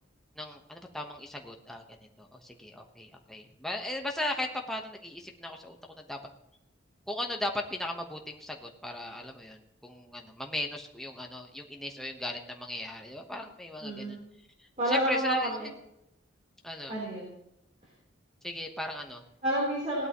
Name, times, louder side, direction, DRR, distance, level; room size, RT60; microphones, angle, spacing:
voice 1, 0.4-6.2 7.1-14.2 14.6-15.7 16.6-16.9 18.4-19.2, left 1 dB, ahead, 2 dB, 1.1 m, -37 dB
voice 2, 13.8-14.2 14.8-15.7 16.9-17.3 19.4-20.1, equal, 35° right, -6 dB, 3.8 m, -29 dB
17.5 x 12.0 x 3.1 m, 0.82 s
head